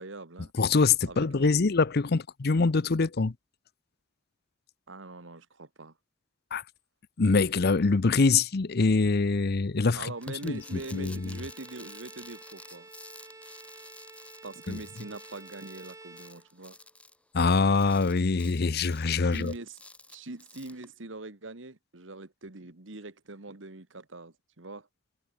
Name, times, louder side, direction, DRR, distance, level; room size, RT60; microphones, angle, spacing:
voice 1, 0.0-0.5 1.1-1.5 4.9-5.9 9.9-12.9 14.4-16.8 19.3-19.8 20.1-24.9, right 2 dB, 85° right, 1.9 m, -43 dB
voice 2, 0.6-3.3 6.5-6.6 7.2-10.1 10.4-11.4 14.7-14.8 17.3-19.5, left 4 dB, 55° left, 0.7 m, -24 dB
sound 1, 10.2-20.9, left 2 dB, 5° left, 5.7 m, -51 dB
Bowed string instrument, 10.2-16.9, right 2 dB, 15° right, 3.9 m, -51 dB
head